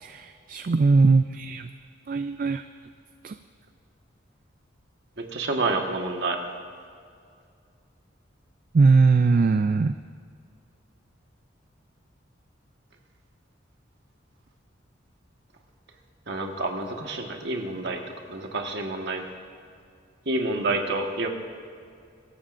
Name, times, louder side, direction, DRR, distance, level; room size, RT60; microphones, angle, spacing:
voice 1, 0.0-1.7 2.1-2.6 3.2-3.3 8.7-9.9, right 4 dB, 45° right, 9 dB, 0.4 m, -20 dB
voice 2, 5.3-6.4 16.3-18.0 18.3-19.2 20.2-21.3, right 2 dB, 60° right, 2 dB, 1.5 m, -28 dB
23.5 x 14.0 x 2.5 m, 2.3 s
head